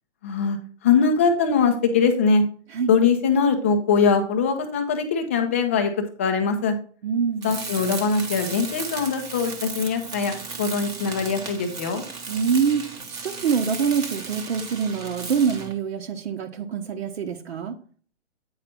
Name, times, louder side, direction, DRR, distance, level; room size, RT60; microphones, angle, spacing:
voice 1, 0.2-2.4 2.9-6.7 7.4-12.1, left 5 dB, 10° left, 5 dB, 0.4 m, -22 dB
voice 2, 7.0-7.5 12.3-17.8, right 6 dB, 60° right, 2 dB, 1.0 m, -25 dB
Tools, 7.4-15.8, right 4 dB, 10° right, 0.8 m, -35 dB
8.7 x 5.0 x 4.2 m, 0.43 s
figure-of-eight pair, 135°, 36 cm